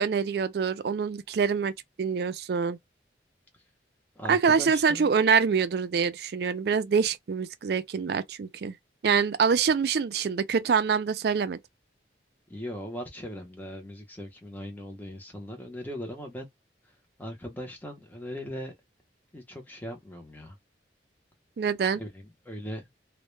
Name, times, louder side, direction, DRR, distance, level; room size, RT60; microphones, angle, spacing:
voice 1, 0.0-1.7 2.0-2.8 4.3-8.8 9.0-11.6 21.6-22.0, right 6 dB, 55° right, 0.3 m, -25 dB
voice 2, 4.2-5.2 12.5-16.5 16.8-18.7 19.3-20.6 22.0-22.8, equal, 10° left, 0.6 m, -39 dB
2.1 x 2.1 x 3.0 m
head